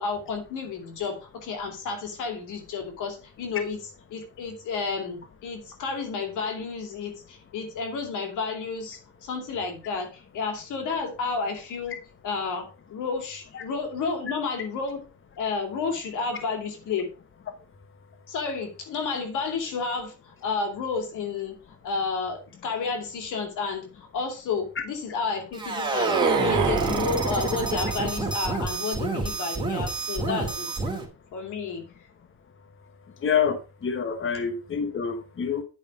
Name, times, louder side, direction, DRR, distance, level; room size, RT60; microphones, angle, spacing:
voice 1, 0.0-3.8 4.1-12.0 12.2-15.0 15.4-17.1 18.3-21.6 21.8-30.7 31.3-31.8, left 5 dB, 85° left, 4 dB, 2.6 m, -31 dB
sound 1, 25.5-31.1, right 2 dB, 15° right, 2.6 m, -27 dB
sound 2, 25.8-28.9, right 11 dB, 75° right, 0.9 m, -31 dB
voice 2, 33.2-33.6 33.8-35.6, left 7 dB, 40° left, 8 dB, 1.2 m, -26 dB
9.7 x 5.3 x 4.7 m, 0.32 s
cardioid pair, 90°, 30 cm